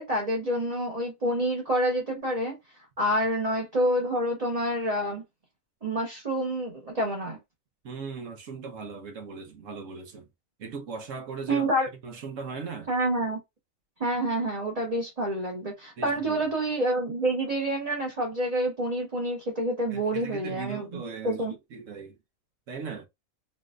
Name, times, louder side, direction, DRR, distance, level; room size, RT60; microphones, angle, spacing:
voice 1, 0.0-2.5 3.0-5.2 5.8-7.4 11.5-11.9 12.9-13.4 14.0-21.5, right 1 dB, 30° right, 1.0 m, -28 dB
voice 2, 7.8-10.3 10.6-12.9 16.0-16.5 19.9-22.2 22.7-23.1, right 5 dB, 70° right, 1.2 m, -39 dB
4.1 x 2.5 x 2.4 m
omnidirectional pair, 1.4 m